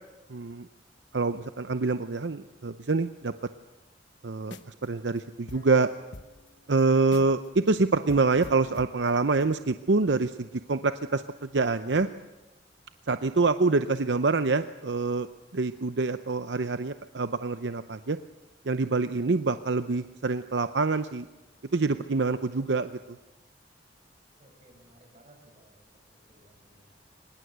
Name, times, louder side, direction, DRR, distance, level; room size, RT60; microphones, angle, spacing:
voice 1, 0.3-0.7 1.1-3.3 4.2-5.9 6.7-12.1 13.1-15.3 15.5-18.2 18.6-21.3 21.7-22.9, right 3 dB, 75° right, 11 dB, 0.7 m, -26 dB
sound 1, 4.5-4.9 5.2-5.3 5.5-7.5 7.8-7.9 8.1-9.5, left 2 dB, 85° left, 1.1 m, -47 dB
voice 2, 24.4-25.8 26.1-27.0, right 1 dB, 40° right, 2 dB, 7.9 m, -59 dB
23.5 x 20.5 x 8.0 m, 1.1 s
head